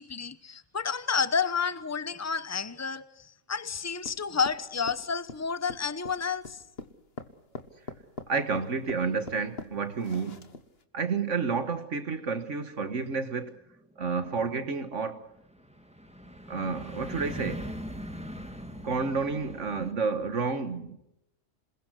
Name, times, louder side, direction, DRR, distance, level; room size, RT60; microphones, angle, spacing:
voice 1, 0.0-6.6, left 5 dB, 15° left, 0.9 m, -30 dB
sound 1, 4.0-10.8, left 3 dB, 55° left, 1.9 m, -43 dB
voice 2, 8.3-10.4 10.9-13.6 14.0-15.3 16.5-17.7 18.8-21.0, right 4 dB, 75° right, 1.8 m, -30 dB
sound 2, 13.5-19.9, equal, 5° right, 2.0 m, -41 dB
27.5 x 21.5 x 6.4 m
omnidirectional pair, 1.3 m